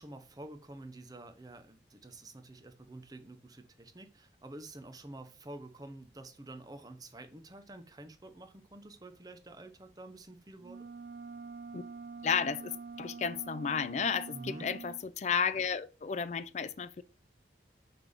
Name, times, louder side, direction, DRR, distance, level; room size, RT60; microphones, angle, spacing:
voice 1, 0.0-10.9 14.3-14.7, right 2 dB, 20° right, 0.7 m, -49 dB
sound 1, 10.6-15.0, right 4 dB, 60° right, 0.3 m, -45 dB
voice 2, 12.2-12.7 13.0-17.0, left 6 dB, 40° left, 0.3 m, -32 dB
5.9 x 3.4 x 5.2 m
head